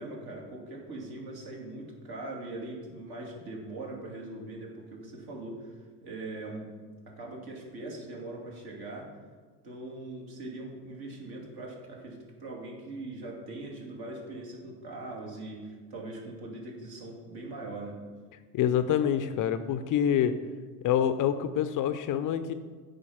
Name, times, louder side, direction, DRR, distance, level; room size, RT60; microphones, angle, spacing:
voice 1, 0.0-6.7 7.1-9.1 9.6-18.0, right 2 dB, 50° right, -1 dB, 2.7 m, -41 dB
voice 2, 18.5-20.4 20.8-22.5, left 9 dB, 40° left, 11 dB, 0.6 m, -26 dB
8.5 x 5.1 x 5.7 m, 1.5 s
hypercardioid pair, 65°, 48 cm